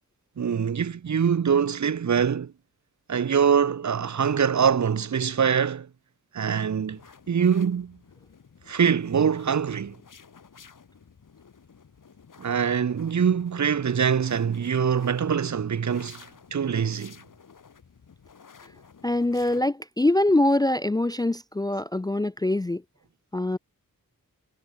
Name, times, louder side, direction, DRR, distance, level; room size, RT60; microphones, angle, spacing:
voice 1, 0.4-2.5 3.1-5.9 6.3-7.0 7.3-8.0 8.7-10.0 12.4-17.1, right 7 dB, 55° right, 1.0 m, -24 dB
sound 1, 6.6-19.7, left 6 dB, 65° left, 3.5 m, -53 dB
voice 2, 19.0-22.8 23.3-23.6, left 1 dB, 10° left, 0.4 m, -24 dB
wide cardioid pair, 120°, 34 cm